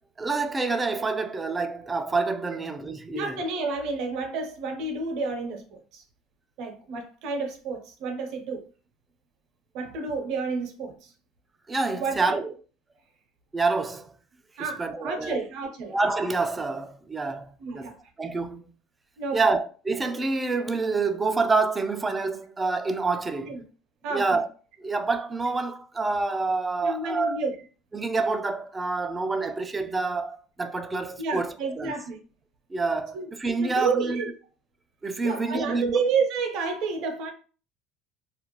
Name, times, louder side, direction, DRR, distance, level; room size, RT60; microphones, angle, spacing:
voice 1, 0.2-3.4 11.7-12.5 13.5-14.1 14.8-15.4 15.9-17.9 18.2-18.7 19.3-23.6 24.1-24.5 24.8-27.4 27.9-31.9 32.7-34.2 35.0-36.0, right 3 dB, 20° right, 0.4 m, -27 dB
voice 2, 3.1-6.0 6.6-8.7 9.7-11.1 12.0-12.4 14.6-15.9 17.6-18.0 19.2-19.5 23.4-23.6 24.0-24.4 26.8-27.5 31.2-32.2 33.1-33.3 33.6-34.3 35.2-37.3, right 4 dB, 65° right, 0.7 m, -30 dB
2.4 x 2.1 x 3.0 m
supercardioid pair, 95°, 0 cm